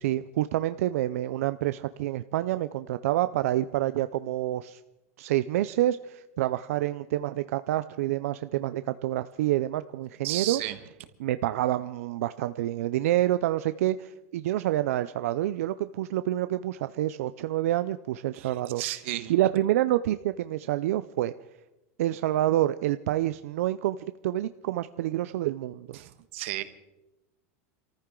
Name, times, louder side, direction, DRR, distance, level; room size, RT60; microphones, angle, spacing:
voice 1, 0.0-4.8 5.2-10.6 11.2-18.8 19.3-21.3 22.0-24.0 24.2-26.0, right 14 dB, 90° right, 12 dB, 0.5 m, -27 dB
voice 2, 10.2-10.8 18.4-19.3 25.9-26.6, right 16 dB, 60° right, 11 dB, 1.3 m, -33 dB
26.0 x 14.5 x 3.8 m, 0.99 s
supercardioid pair, 170°, 8 cm